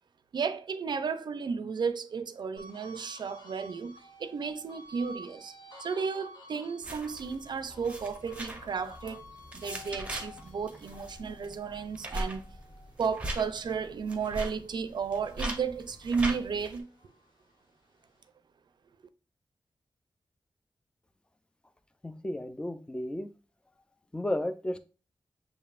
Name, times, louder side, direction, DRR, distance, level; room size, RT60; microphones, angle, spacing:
voice 1, 0.3-5.5 5.8-9.2 9.5-12.4 13.0-16.9, right 5 dB, 70° right, 0.4 m, -33 dB
sound 1, 2.6-15.2 15.6-17.3, left 1 dB, 60° left, 1.4 m, -52 dB
sound 2, 6.8-16.8, right 1 dB, 15° right, 0.7 m, -40 dB
voice 2, 22.0-23.3 24.1-24.8, left 1 dB, 10° left, 0.4 m, -33 dB
6.6 x 2.9 x 2.4 m
wide cardioid pair, 150°, 8 cm